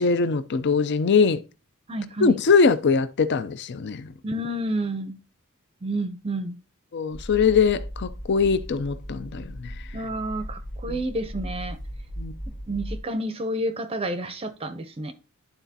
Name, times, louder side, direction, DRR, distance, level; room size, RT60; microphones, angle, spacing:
voice 1, 0.0-1.4 2.2-4.1 6.9-9.7 10.9-11.0 12.2-12.3, left 5 dB, 55° left, 0.5 m, -22 dB
voice 2, 1.9-2.4 4.2-5.2 5.8-6.6 9.9-11.8 12.7-15.1, right 1 dB, 25° right, 0.5 m, -30 dB
sound 1, 7.1-13.0, equal, 35° left, 1.3 m, -37 dB
11.5 x 4.0 x 2.7 m
head